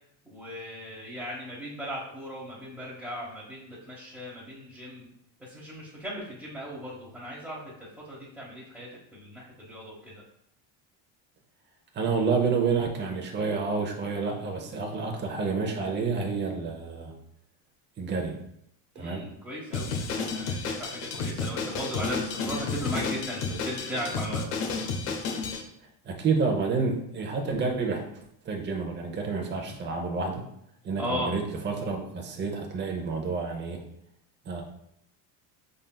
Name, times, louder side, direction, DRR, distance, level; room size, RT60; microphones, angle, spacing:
voice 1, 0.2-5.1 5.4-10.2 18.9-24.4 31.0-31.3, equal, ahead, -8 dB, 1.1 m, -37 dB
voice 2, 11.9-17.1 18.0-18.4 18.9-19.2 25.1-25.2 26.0-28.0 28.4-30.4 30.8-33.8 34.5-34.6, right 4 dB, 25° right, 1 dB, 0.8 m, -29 dB
Drum kit, 19.7-25.6, left 4 dB, 85° left, 0.8 m, -31 dB
5.2 x 3.8 x 2.3 m, 0.75 s
supercardioid pair, 110°, 43 cm